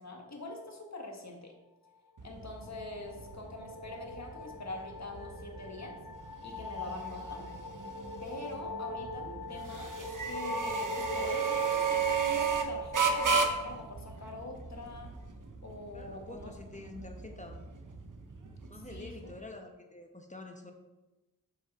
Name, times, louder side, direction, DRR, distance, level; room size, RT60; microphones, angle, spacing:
voice 1, 0.0-1.5 2.2-5.9 6.4-7.5 8.2-15.1 15.6-16.5 18.9-19.1, left 2 dB, 55° left, 2 dB, 1.6 m, -44 dB
sound 1, 2.2-19.4, right 5 dB, 65° right, 0.9 m, -35 dB
sound 2, 2.4-13.8, left 3 dB, 80° left, 0.8 m, -42 dB
voice 2, 15.9-17.6 18.7-20.7, left 2 dB, 20° left, 4 dB, 1.0 m, -47 dB
7.2 x 6.6 x 4.2 m, 1.1 s
wide cardioid pair, 65°, 33 cm